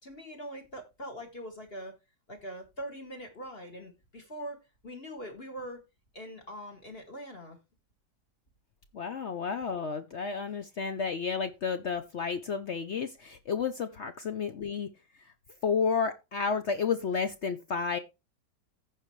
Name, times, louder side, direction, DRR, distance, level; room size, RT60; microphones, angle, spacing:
voice 1, 0.0-2.0 2.3-4.6 4.8-5.8 6.1-7.6, equal, 35° left, 1.8 m, -42 dB
voice 2, 8.9-14.9 15.6-18.0, left 5 dB, 60° left, 0.7 m, -31 dB
15.0 x 5.0 x 3.1 m
omnidirectional pair, 1.9 m